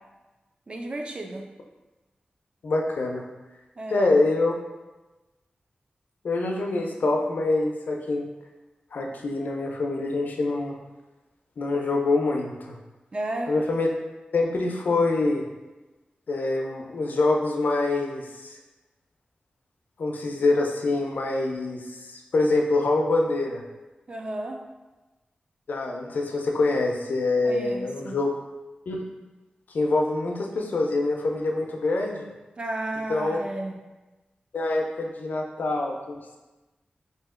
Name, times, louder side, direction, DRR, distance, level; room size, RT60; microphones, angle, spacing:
voice 1, 0.7-1.4 3.8-4.1 13.1-13.5 24.1-24.6 27.4-28.2 32.6-33.8, right 1 dB, 35° right, 2 dB, 0.4 m, -33 dB
voice 2, 2.6-3.2 3.9-4.5 6.2-8.2 8.9-10.7 11.6-12.8 13.5-13.9 14.3-15.4 16.3-18.5 20.0-23.6 25.7-28.3 28.9-29.0 29.7-32.3 33.1-33.4 34.5-36.4, left 2 dB, 80° left, 1 dB, 0.5 m, -25 dB
2.8 x 2.7 x 3.6 m, 1.1 s
wide cardioid pair, 130°, 3 cm